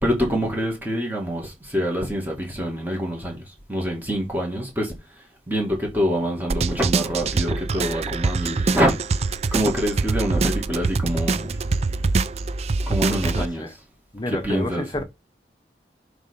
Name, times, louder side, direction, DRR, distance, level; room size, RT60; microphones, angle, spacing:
voice 1, 0.0-11.6 12.8-13.8 14.3-14.9, equal, 10° right, 2.0 m, -26 dB
sound 1, 6.5-13.5, right 3 dB, 35° right, 0.4 m, -24 dB
voice 2, 13.1-13.7 14.1-15.0, left 1 dB, 25° left, 0.7 m, -30 dB
7.1 x 3.3 x 5.2 m
head